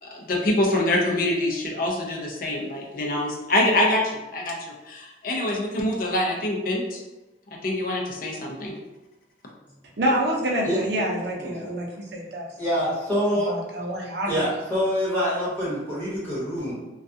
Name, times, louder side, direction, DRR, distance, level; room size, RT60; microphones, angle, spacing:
voice 1, 0.0-7.0 7.6-8.7, left 1 dB, 50° left, -1 dB, 0.5 m, -25 dB
voice 2, 10.0-12.5 12.9-13.0 13.4-14.4, right 1 dB, 65° right, -2 dB, 0.6 m, -27 dB
voice 3, 11.4-11.7 12.6-13.5 14.2-16.7, equal, 10° left, -10 dB, 1.1 m, -26 dB
2.3 x 2.3 x 2.6 m, 1.1 s
head